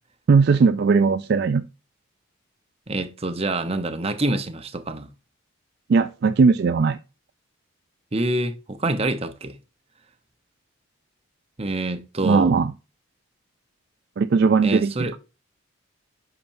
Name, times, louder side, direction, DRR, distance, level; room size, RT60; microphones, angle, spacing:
voice 1, 0.3-1.6 5.9-7.0 12.2-12.7 14.2-15.2, right 5 dB, 50° right, 0.3 m, -18 dB
voice 2, 2.9-5.1 8.1-9.6 11.6-12.5 14.6-15.1, right 2 dB, 30° right, 0.8 m, -26 dB
8.6 x 5.9 x 2.6 m
head